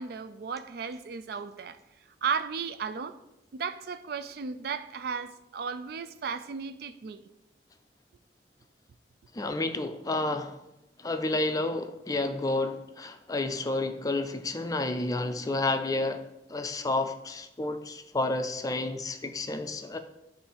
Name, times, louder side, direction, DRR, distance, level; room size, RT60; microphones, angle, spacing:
voice 1, 0.0-1.8 2.2-3.2 3.5-7.2, right 6 dB, 60° right, 0.4 m, -35 dB
voice 2, 9.3-10.6 11.0-16.2 16.5-20.0, left 2 dB, 20° left, 0.4 m, -30 dB
7.1 x 2.6 x 5.6 m
head